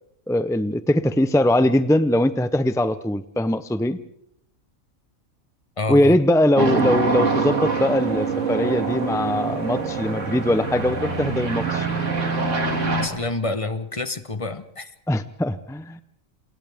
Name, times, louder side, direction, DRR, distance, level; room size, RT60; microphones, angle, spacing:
voice 1, 0.3-4.0 5.9-11.9 15.1-16.0, left 1 dB, 5° left, 12 dB, 0.3 m, -21 dB
voice 2, 5.8-6.2 13.0-14.9, left 2 dB, 25° left, 11 dB, 1.0 m, -28 dB
sound 1, 6.6-13.1, right 4 dB, 65° right, 2.7 m, -24 dB
28.5 x 28.0 x 3.5 m, 0.73 s
omnidirectional pair, 1.4 m